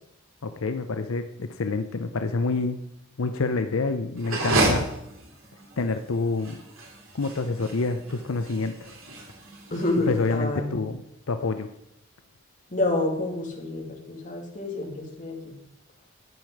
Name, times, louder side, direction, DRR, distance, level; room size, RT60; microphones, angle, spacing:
voice 1, 0.4-2.8 3.2-4.9 5.8-6.6 7.1-8.9 10.1-11.0 11.3-11.7, left 3 dB, 80° left, 8 dB, 0.6 m, -27 dB
sound 1, 4.2-10.3, right 2 dB, 75° right, 2.9 m, -30 dB
voice 2, 9.7-10.8 12.7-15.5, left 2 dB, 35° left, 0 dB, 2.4 m, -28 dB
12.5 x 9.1 x 4.7 m, 0.78 s
head